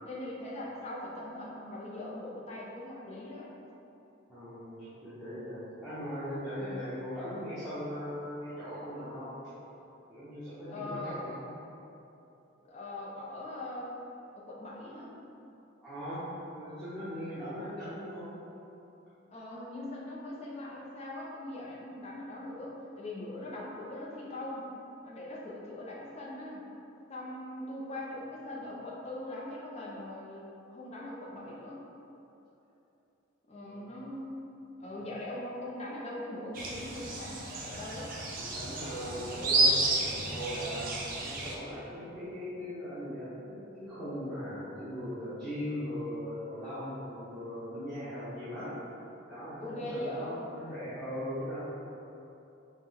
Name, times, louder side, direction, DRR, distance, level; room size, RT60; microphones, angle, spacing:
voice 1, 0.0-3.5 6.6-6.9 10.7-11.2 12.6-14.0 14.3-15.1 19.3-24.7 25.0-26.6 27.1-31.8 33.5-34.5 34.8-38.1 49.6-50.4, left 1 dB, 30° left, -5 dB, 0.6 m, -41 dB
voice 2, 4.3-9.4 10.1-11.5 15.8-18.4 33.6-34.0 34.9-35.0 38.4-48.8 49.3-51.6, equal, ahead, -16 dB, 0.9 m, -39 dB
sound 1, 36.5-41.6, right 2 dB, 45° right, 0.5 m, -31 dB
4.4 x 2.2 x 3.6 m, 2.9 s
head